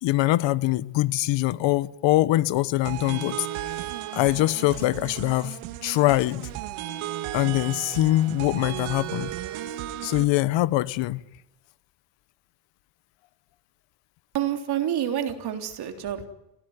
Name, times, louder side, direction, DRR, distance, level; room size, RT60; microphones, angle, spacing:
voice 1, 0.0-3.5 4.1-5.6 5.8-6.5 7.3-9.3 10.0-11.2, left 17 dB, 65° left, 1.3 m, -23 dB
sound 1, 2.9-10.2, right 13 dB, 70° right, 2.4 m, -35 dB
voice 2, 14.3-16.3, right 10 dB, 50° right, 3.6 m, -28 dB
27.5 x 18.5 x 9.6 m
cardioid pair, 120°, 49 cm